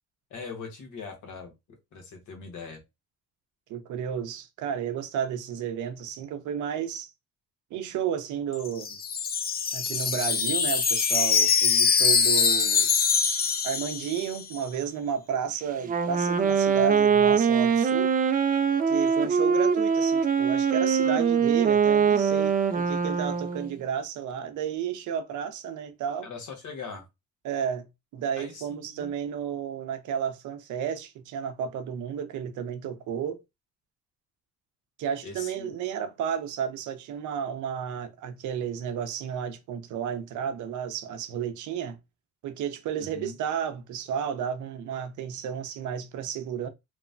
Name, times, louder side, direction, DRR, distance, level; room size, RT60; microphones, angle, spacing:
voice 1, 0.3-1.5 1.9-2.8 21.0-21.5 26.2-27.1 28.4-29.1 35.2-35.7 43.0-43.3, left 5 dB, 75° left, 1.1 m, -41 dB
voice 2, 3.7-7.1 7.7-9.0 9.7-12.9 13.6-18.1 18.9-26.3 27.4-27.9 28.1-33.4 35.0-42.0 42.4-46.7, right 8 dB, 80° right, 0.6 m, -32 dB
Wind chime, 8.5-14.5, left 6 dB, 30° left, 0.4 m, -24 dB
Wind instrument woodwind instrument, 15.8-23.7, right 6 dB, 30° right, 0.4 m, -23 dB
3.0 x 2.1 x 2.5 m
cardioid pair, 90°, 30 cm